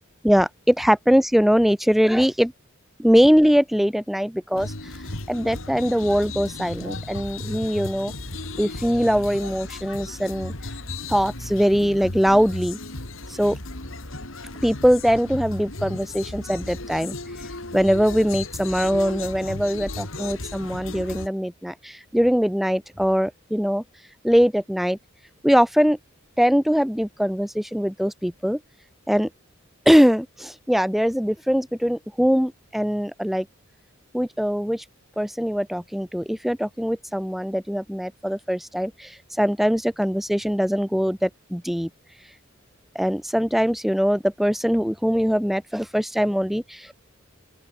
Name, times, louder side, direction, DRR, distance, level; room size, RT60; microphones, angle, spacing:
voice 1, 0.2-2.5 3.0-4.7 5.3-8.1 8.6-10.5 11.1-12.8 13.3-13.6 14.6-17.1 17.7-23.8 24.2-25.0 25.4-26.0 26.4-28.6 29.1-29.3 29.9-33.5 34.1-34.8 35.2-41.9 42.9-46.9, equal, ahead, 0.6 m, -22 dB
Lively Beach in Grand Gaube Mauritius, 4.5-21.3, left 2 dB, 70° left, 4.1 m, -35 dB
open air
head